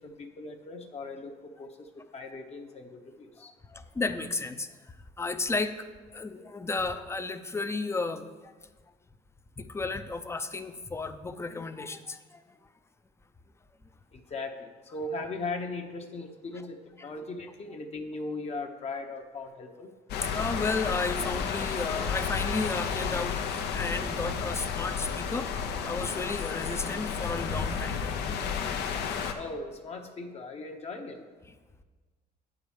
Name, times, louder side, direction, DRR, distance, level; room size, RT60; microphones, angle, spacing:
voice 1, 0.0-1.3 1.6-3.5 14.1-16.8 17.0-19.9 29.3-31.2, left 3 dB, 40° left, 3 dB, 0.9 m, -38 dB
voice 2, 3.4-8.7 9.6-12.6 17.0-17.1 20.3-25.5 25.8-28.2, left 3 dB, 15° left, 10 dB, 0.6 m, -33 dB
sound 1, 20.1-29.3, left 6 dB, 80° left, 0.9 m, -32 dB
9.0 x 4.9 x 7.1 m, 1.4 s
cardioid pair, 110°, 17 cm